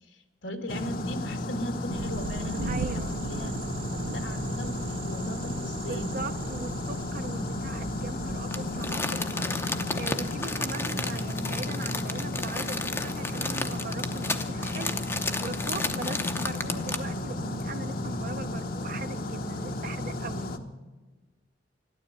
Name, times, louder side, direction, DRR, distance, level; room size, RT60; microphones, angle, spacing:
voice 1, 0.1-3.6 3.9-6.2, equal, 75° left, 6 dB, 2.0 m, -38 dB
sound 1, 0.7-20.6, left 2 dB, 50° left, 1.1 m, -33 dB
sound 2, 1.9-9.0, right 5 dB, 90° right, 0.5 m, -38 dB
voice 2, 2.6-3.1 5.9-15.0 15.4-20.5, right 3 dB, 50° right, 9 dB, 0.8 m, -40 dB
Crumpling crinkling, 8.5-17.2 17.6-17.7, left 3 dB, 15° left, 0.7 m, -33 dB
12.5 x 12.5 x 8.7 m, 1.3 s
head